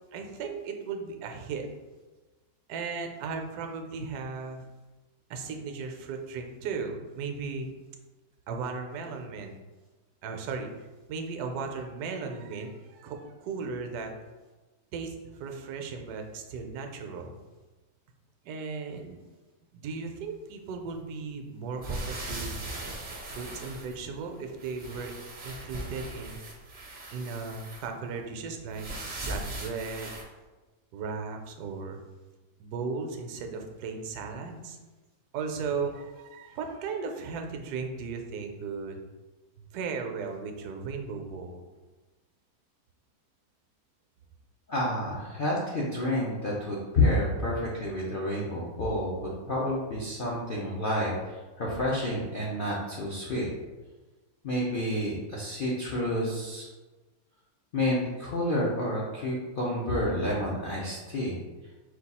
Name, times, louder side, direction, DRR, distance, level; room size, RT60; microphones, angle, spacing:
voice 1, 0.1-1.7 2.7-4.7 5.3-7.7 8.5-9.5 10.2-10.7 11.1-14.1 14.9-17.3 18.4-19.2 19.7-22.6 23.3-25.1 25.4-26.4 27.1-28.9 29.2-30.1 30.9-32.0 32.6-34.8 35.3-39.0 39.7-41.6, right 5 dB, 70° right, 4 dB, 1.0 m, -36 dB
sound 1, 21.8-24.3 24.6-27.9 28.7-30.2, right 2 dB, 50° right, 0.5 m, -39 dB
voice 2, 44.7-53.5 54.4-56.7 57.7-61.4, left 1 dB, 65° left, -5 dB, 0.5 m, -29 dB
4.6 x 2.3 x 4.1 m, 1.2 s
omnidirectional pair, 1.8 m